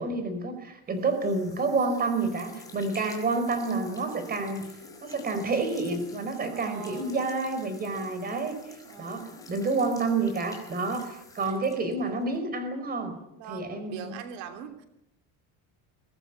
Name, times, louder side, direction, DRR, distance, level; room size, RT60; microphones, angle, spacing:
voice 1, 0.0-4.6 5.0-13.1 13.5-14.1, right 3 dB, 25° right, 9 dB, 4.6 m, -29 dB
sound 1, 1.0-12.4, left 3 dB, 10° left, 4.2 m, -49 dB
voice 2, 6.5-7.2 8.8-9.3 13.3-14.9, right 8 dB, 85° right, 7 dB, 3.1 m, -42 dB
23.5 x 18.5 x 8.6 m, 0.81 s
cardioid pair, 175°, 38 cm